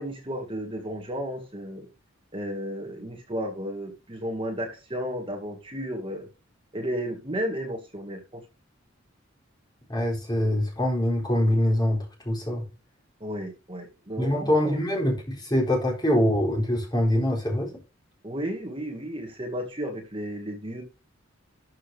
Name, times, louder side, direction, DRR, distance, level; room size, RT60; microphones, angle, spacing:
voice 1, 0.0-1.9 2.3-6.3 6.7-8.4 13.2-14.8 18.2-20.8, equal, 25° right, 2.1 m, -33 dB
voice 2, 9.9-12.6 14.2-17.7, left 1 dB, 20° left, 3.8 m, -24 dB
12.5 x 6.3 x 3.5 m
head